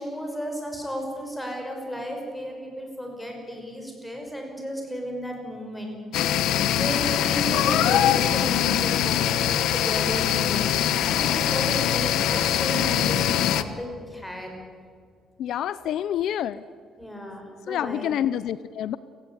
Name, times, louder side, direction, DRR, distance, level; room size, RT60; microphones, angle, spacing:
voice 1, 0.0-6.4 6.7-13.3 13.5-14.5 17.0-18.1, equal, 5° left, 2 dB, 5.7 m, -34 dB
sound 1, 6.1-13.6, left 11 dB, 90° left, 1.2 m, -23 dB
voice 2, 15.4-16.6 17.7-19.0, left 10 dB, 60° left, 16 dB, 0.6 m, -27 dB
29.0 x 17.5 x 9.8 m, 2.1 s
cardioid pair, 175°, 0 cm